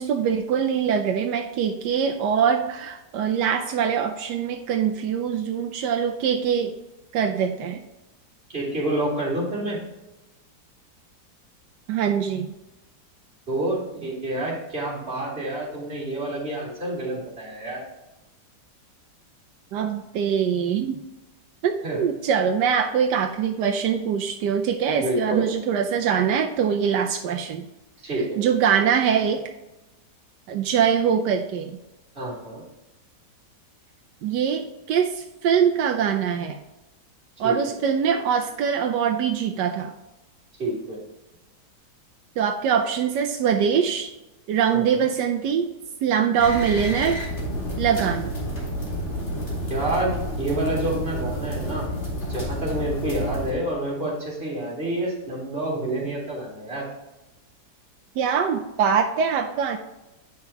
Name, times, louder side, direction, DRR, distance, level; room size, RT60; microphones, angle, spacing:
voice 1, 0.0-6.7 7.1-7.8 11.9-12.5 19.7-21.0 21.6-27.7 28.4-29.4 30.5-31.8 34.2-36.6 37.4-39.9 42.4-44.1 44.5-45.7 46.0-47.2 47.8-48.3 58.2-59.8, right 7 dB, 85° right, 4 dB, 1.2 m, -23 dB
voice 2, 8.5-9.8 13.5-17.8 21.8-22.0 24.9-25.5 28.0-28.5 32.1-32.6 37.4-37.6 40.6-41.0 44.7-45.0 49.7-51.9 52.3-56.8, right 1 dB, 35° right, -5 dB, 2.9 m, -28 dB
sound 1, 46.4-53.5, equal, 40° left, 2.7 m, -29 dB
9.2 x 5.8 x 2.9 m, 0.98 s
omnidirectional pair, 1.8 m